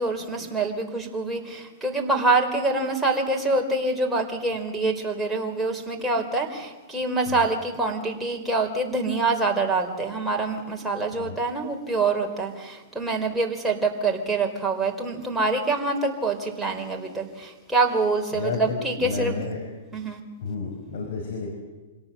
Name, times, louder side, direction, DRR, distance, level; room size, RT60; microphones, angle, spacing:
voice 1, 0.0-19.5 19.9-20.2, right 3 dB, 5° right, 0 dB, 3.9 m, -25 dB
voice 2, 18.3-19.6 20.4-21.5, left 4 dB, 65° left, 2 dB, 5.5 m, -31 dB
26.0 x 18.0 x 7.8 m, 1.3 s
hypercardioid pair, 130°, 0 cm